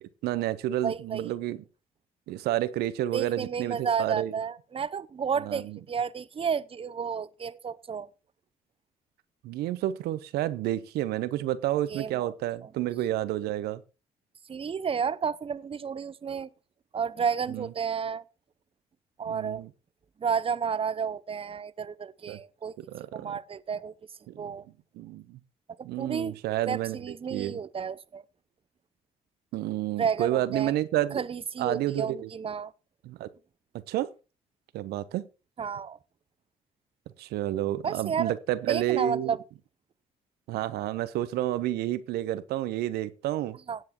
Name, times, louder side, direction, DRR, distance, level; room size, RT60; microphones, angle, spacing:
voice 1, 0.0-1.6 2.3-4.4 5.4-5.8 9.4-13.8 17.5-17.7 19.3-19.7 22.3-22.4 22.8-23.3 24.3-24.4 25.0-25.4 25.8-27.0 27.3-27.6 29.5-31.2 31.6-32.3 33.0-33.3 33.9-34.1 34.7-35.3 37.2-39.4 40.5-43.6, right 13 dB, 75° right, 0.9 m, -30 dB
voice 2, 0.8-1.3 3.1-8.1 11.9-12.3 12.6-12.7 14.5-16.5 16.9-18.2 19.2-19.6 20.2-22.8 23.1-23.9 24.4-24.6 26.0-26.4 26.7-28.2 30.0-30.7 31.1-32.7 35.6-36.0 37.8-38.3 38.7-39.4 43.7-43.8, right 6 dB, 35° right, 0.7 m, -31 dB
18.0 x 7.7 x 3.0 m
hypercardioid pair, 55°, 17 cm